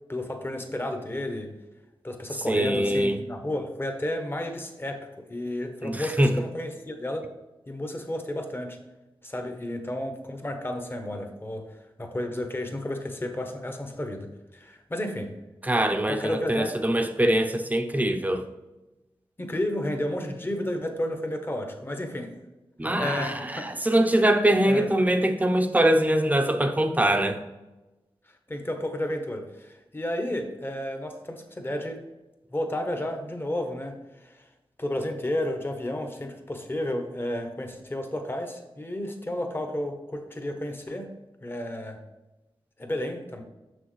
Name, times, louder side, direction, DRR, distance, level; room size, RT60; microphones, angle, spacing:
voice 1, 0.1-1.5 2.0-7.3 7.7-8.8 9.2-15.4 16.1-16.7 19.4-22.3 22.8-23.7 24.6-24.9 28.5-32.0 32.5-34.4 34.8-41.1 41.4-42.0 42.8-43.4, left 1 dB, 25° left, 5 dB, 1.0 m, -32 dB
voice 2, 2.5-3.2 5.8-6.3 15.6-18.4 22.8-27.4, right 1 dB, 15° right, 6 dB, 0.6 m, -23 dB
6.9 x 6.2 x 3.2 m, 1.1 s
wide cardioid pair, 115°, 9 cm